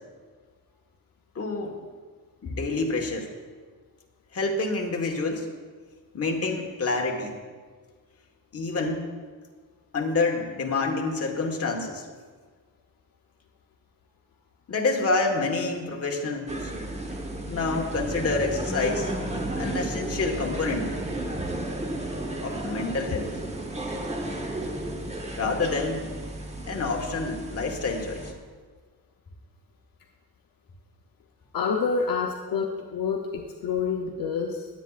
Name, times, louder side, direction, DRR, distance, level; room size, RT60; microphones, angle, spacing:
voice 1, 1.3-1.7 2.4-3.3 4.3-5.5 6.1-7.3 8.5-9.1 9.9-12.0 14.7-16.7 17.5-19.1 19.6-20.9 22.4-23.3 25.4-26.1 26.7-28.3, left 3 dB, 40° left, 2 dB, 1.4 m, -27 dB
sound 1, 16.5-28.3, right 1 dB, 20° right, 1.1 m, -33 dB
voice 2, 31.5-34.7, left 5 dB, 65° left, 1 dB, 0.8 m, -28 dB
20.0 x 8.4 x 2.4 m, 1.5 s
wide cardioid pair, 135°, 37 cm